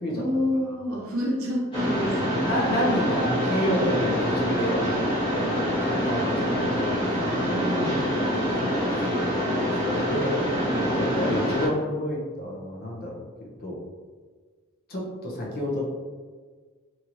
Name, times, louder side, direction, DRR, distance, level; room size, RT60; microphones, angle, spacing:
voice 1, 0.1-2.4 7.3-8.1 10.2-10.8, left 1 dB, 70° right, -2 dB, 0.7 m, -29 dB
Mechanisms, 1.7-11.7, equal, 25° left, 1.2 m, -25 dB
voice 2, 2.1-5.0 5.3-7.2 8.4-8.7 9.4-10.4 10.7-13.2 13.6-13.8 14.9-15.9, left 1 dB, 45° left, -3 dB, 0.6 m, -29 dB
2.9 x 2.9 x 2.5 m, 1.5 s
head